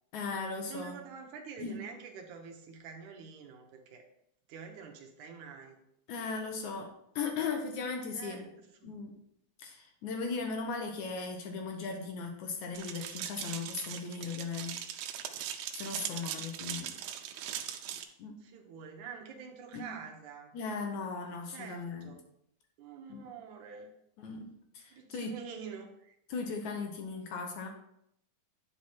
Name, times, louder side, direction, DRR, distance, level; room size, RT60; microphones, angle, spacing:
voice 1, 0.1-1.0 1.6-1.8 6.1-8.5 8.8-9.2 9.6-14.8 15.7-16.9 18.2-18.4 19.7-19.9 20.5-22.1 23.1-23.2 24.2-24.5 24.7-25.4 26.3-27.7, left 4 dB, 70° left, 3 dB, 1.9 m, -37 dB
voice 2, 0.7-4.0 4.5-5.8 8.1-9.0 16.0-16.4 18.4-20.6 21.5-22.3 22.8-23.9 24.9-26.1, right 6 dB, 65° right, 2 dB, 2.2 m, -47 dB
sound 1, 12.7-18.0, right 10 dB, 80° right, 2.5 m, -40 dB
10.0 x 4.9 x 4.5 m, 0.76 s
omnidirectional pair, 4.3 m